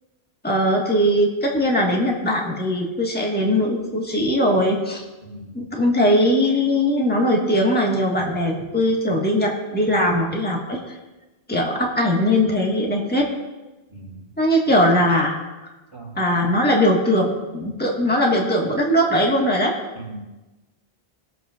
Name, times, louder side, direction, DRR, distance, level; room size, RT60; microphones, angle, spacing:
voice 1, 0.4-5.0 5.5-10.8 11.5-13.3 14.4-15.4 16.2-19.8, equal, 10° left, -1 dB, 1.6 m, -20 dB
voice 2, 5.2-5.6 13.9-14.4 14.7-14.8 15.9-16.2 19.9-20.2, right 2 dB, 25° right, -3 dB, 2.8 m, -39 dB
21.0 x 7.7 x 2.5 m, 1.1 s
omnidirectional pair, 1.1 m